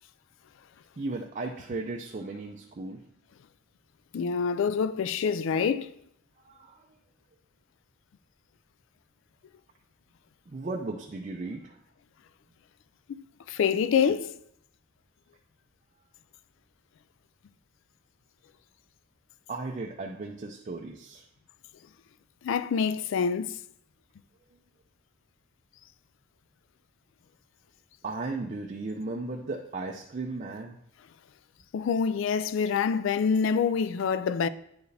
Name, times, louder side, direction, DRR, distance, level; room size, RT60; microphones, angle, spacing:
voice 1, 1.0-3.0 6.4-6.9 10.5-11.8 19.5-21.2 28.0-30.8, right 3 dB, 35° right, 0.4 m, -36 dB
voice 2, 4.1-5.9 13.1-13.2 13.5-14.3 22.4-23.5 31.7-34.5, left 6 dB, 60° left, 0.3 m, -26 dB
10.0 x 4.6 x 3.3 m
head